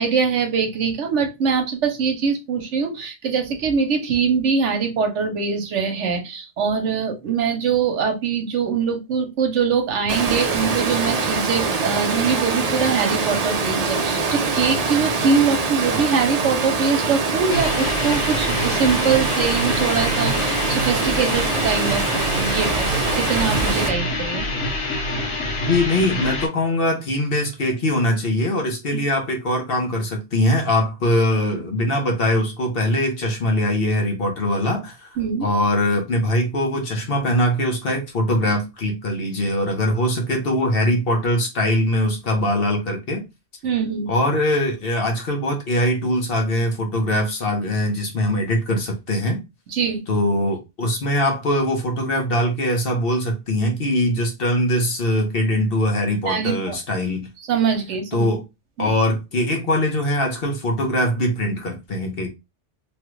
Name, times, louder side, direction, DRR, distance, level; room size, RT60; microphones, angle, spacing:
voice 1, 0.0-24.5 35.2-35.5 43.6-44.1 49.7-50.0 56.3-56.8 57.5-58.3 58.8-58.9, right 6 dB, 75° right, 1.1 m, -23 dB
Water, 10.1-23.9, right 4 dB, 50° right, 0.5 m, -23 dB
sound 1, 17.5-26.5, left 1 dB, 80° left, 1.1 m, -26 dB
voice 2, 25.6-35.1 35.4-43.2 44.1-49.4 50.1-57.3 58.1-58.4 58.8-62.3, left 1 dB, 55° left, 1.0 m, -22 dB
3.1 x 2.3 x 3.1 m
omnidirectional pair, 1.2 m